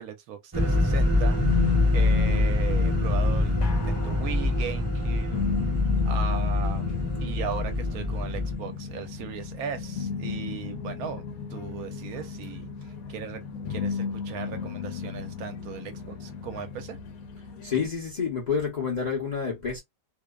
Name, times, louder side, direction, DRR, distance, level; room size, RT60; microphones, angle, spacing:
voice 1, 0.0-1.6 1.9-5.5 6.1-12.7 13.1-13.4 13.7-17.0, right 8 dB, 75° right, 1.0 m, -37 dB
sound 1, 0.5-8.5, left 2 dB, 20° right, 0.6 m, -25 dB
sound 2, 1.3-17.9, left 8 dB, 75° left, 1.0 m, -34 dB
voice 2, 17.6-19.8, left 6 dB, 45° left, 0.6 m, -29 dB
2.7 x 2.0 x 2.2 m
omnidirectional pair, 1.6 m